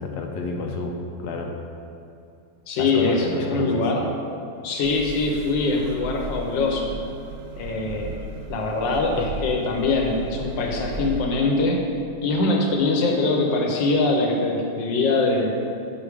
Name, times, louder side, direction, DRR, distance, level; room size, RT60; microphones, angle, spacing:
voice 1, 0.0-1.5 2.8-3.9, left 3 dB, 70° left, 2 dB, 1.1 m, -30 dB
voice 2, 2.7-4.1 4.6-6.9 7.6-8.1 8.5-11.8 12.2-15.5, left 3 dB, 85° left, 1 dB, 1.6 m, -23 dB
sound 1, 4.8-11.3, right 2 dB, 70° right, 0.9 m, -36 dB
6.3 x 5.2 x 4.8 m, 2.5 s
omnidirectional pair, 1.9 m